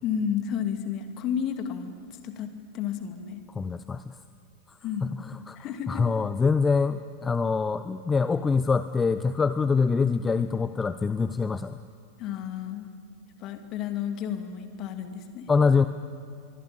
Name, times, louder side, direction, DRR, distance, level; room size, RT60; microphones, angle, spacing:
voice 1, 0.0-3.4 4.8-5.2 5.6-6.1 12.2-12.9 13.4-15.5, left 8 dB, 35° left, 7 dB, 2.4 m, -32 dB
voice 2, 3.6-4.1 5.0-5.6 5.9-11.8 15.5-15.8, left 5 dB, 15° left, 12 dB, 0.6 m, -24 dB
24.0 x 22.5 x 8.8 m, 2.3 s
figure-of-eight pair, 90°, 0 cm